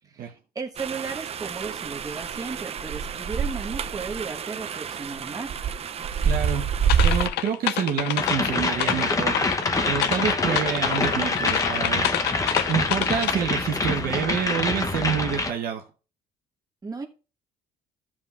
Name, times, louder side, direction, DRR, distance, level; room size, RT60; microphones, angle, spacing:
voice 1, 0.1-5.5 16.8-17.1, right 4 dB, 20° right, 2 dB, 1.2 m, -35 dB
sound 1, 0.8-7.3, right 7 dB, 35° right, 0.5 m, -27 dB
voice 2, 6.2-6.6 7.0-9.4 9.9-12.1 12.7-15.9, right 8 dB, 60° right, 1 dB, 1.0 m, -27 dB
sound 2, 6.9-13.3, left 12 dB, 75° left, 0.4 m, -28 dB
sound 3, 8.2-15.5, left 3 dB, 20° left, 0.8 m, -26 dB
13.0 x 7.4 x 2.4 m, 0.34 s
cardioid pair, 110°, 17 cm